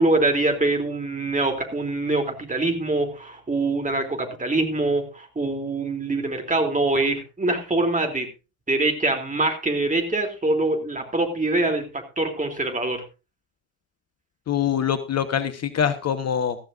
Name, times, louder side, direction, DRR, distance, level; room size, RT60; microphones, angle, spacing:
voice 1, 0.0-8.3 8.7-13.0, right 2 dB, 20° right, 5 dB, 3.2 m, -24 dB
voice 2, 14.5-16.6, left 8 dB, 40° left, 10 dB, 1.3 m, -24 dB
15.5 x 14.0 x 2.6 m, 0.30 s
figure-of-eight pair, 55°, 40 cm